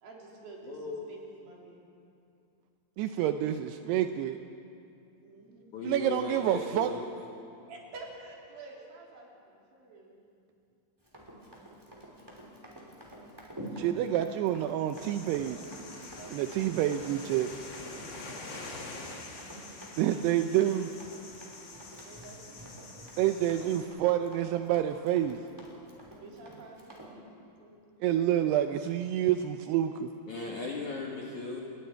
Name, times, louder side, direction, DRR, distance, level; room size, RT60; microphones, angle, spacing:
voice 1, 0.0-1.8 5.2-5.7 7.7-10.2 16.0-16.8 18.1-19.2 21.9-23.2 26.1-27.3 27.6-27.8, right 2 dB, 55° right, -2 dB, 4.5 m, -50 dB
voice 2, 0.6-1.0 5.7-7.1 30.3-31.6, left 3 dB, 60° left, -2 dB, 2.1 m, -37 dB
voice 3, 3.0-4.4 5.8-6.9 13.8-15.6 16.3-17.5 20.0-20.9 23.2-25.4 28.0-30.1, right 12 dB, 90° right, 8 dB, 2.3 m, -28 dB
Run, 11.0-27.1, equal, 5° right, 2.4 m, -48 dB
sound 1, 14.9-23.8, left 3 dB, 45° left, 1.6 m, -46 dB
28.5 x 21.0 x 4.6 m, 2.6 s
omnidirectional pair, 5.4 m